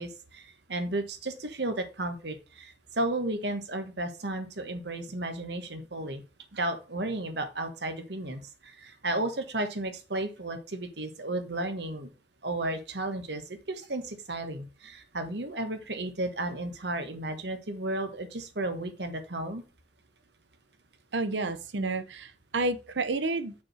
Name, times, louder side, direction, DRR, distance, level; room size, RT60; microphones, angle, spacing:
voice 1, 0.0-6.2 6.5-12.1 12.4-19.6, right 2 dB, 65° right, 1.4 m, -33 dB
voice 2, 21.1-23.5, right 2 dB, 85° right, 0.8 m, -30 dB
6.2 x 4.7 x 4.3 m
head